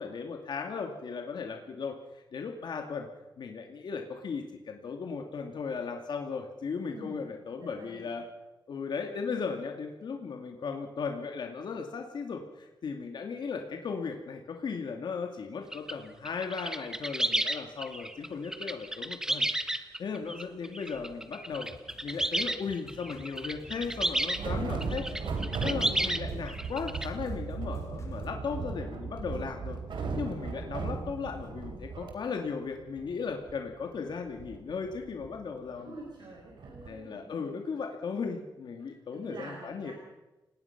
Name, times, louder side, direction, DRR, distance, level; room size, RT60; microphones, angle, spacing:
voice 1, 0.0-3.1 3.4-8.2 8.7-21.7 22.0-25.0 25.6-35.9 36.9-39.9, left 5 dB, 70° left, 3 dB, 2.4 m, -36 dB
voice 2, 6.9-8.1 24.4-25.7 35.8-37.3 38.9-39.9, right 2 dB, 65° right, -1 dB, 5.4 m, -47 dB
sound 1, 15.7-15.9 16.2-24.4 24.8-26.2 26.5-27.1, right 1 dB, 5° right, 1.3 m, -32 dB
sound 2, 21.5-28.3, left 3 dB, 35° left, 4.6 m, -52 dB
sound 3, 22.1-22.2 23.5-32.1 32.5-32.6 32.8-36.0 36.6-36.9, right 4 dB, 90° right, 3.5 m, -37 dB
30.0 x 19.0 x 6.0 m, 1.1 s
wide cardioid pair, 150°, 8 cm